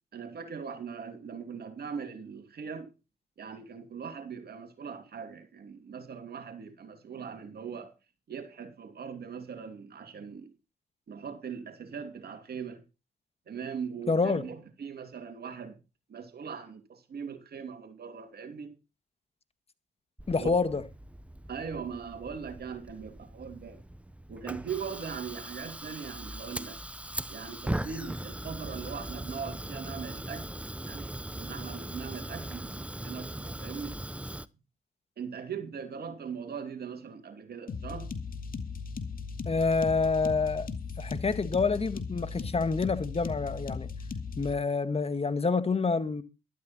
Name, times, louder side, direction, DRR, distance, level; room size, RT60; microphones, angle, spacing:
voice 1, 0.1-2.9 3.4-7.9 8.3-10.5 11.1-12.8 13.5-15.8 16.1-18.7 20.4-20.5 21.5-23.8 24.3-26.8 27.3-30.5 30.8-33.9 35.2-38.1, right 6 dB, 60° right, 2.8 m, -40 dB
voice 2, 14.1-14.4 20.3-20.8 39.5-40.7 41.0-43.9 44.4-46.2, left 4 dB, 35° left, 1.9 m, -27 dB
Fire, 20.2-34.5, right 1 dB, 5° right, 0.9 m, -40 dB
sound 1, 37.7-44.5, left 5 dB, 50° left, 2.6 m, -37 dB
13.0 x 12.5 x 4.4 m
supercardioid pair, 55°, 18 cm